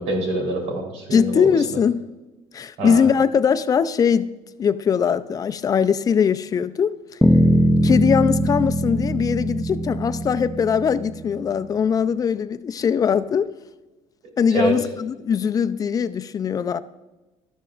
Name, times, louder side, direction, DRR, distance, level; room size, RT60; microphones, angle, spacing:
voice 1, 0.0-1.8 2.8-3.1 14.5-14.8, right 2 dB, 80° right, 3.6 m, -25 dB
voice 2, 1.1-2.0 2.5-4.3 4.6-6.9 7.8-13.5 14.4-16.8, left 7 dB, 30° left, 0.5 m, -21 dB
sound 1, 7.2-11.6, equal, ahead, 0.7 m, -21 dB
13.0 x 12.5 x 2.5 m
cardioid pair, 120°, 11 cm